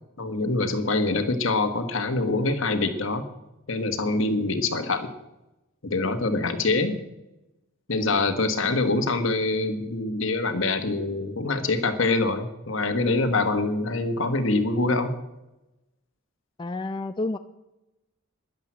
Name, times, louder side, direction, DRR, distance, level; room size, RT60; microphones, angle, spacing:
voice 1, 0.2-3.2 3.7-5.1 5.8-7.0 7.9-15.2, left 3 dB, 65° left, 8 dB, 1.4 m, -25 dB
voice 2, 16.6-17.4, left 2 dB, 20° left, 8 dB, 0.4 m, -29 dB
11.0 x 10.5 x 7.4 m, 0.96 s
head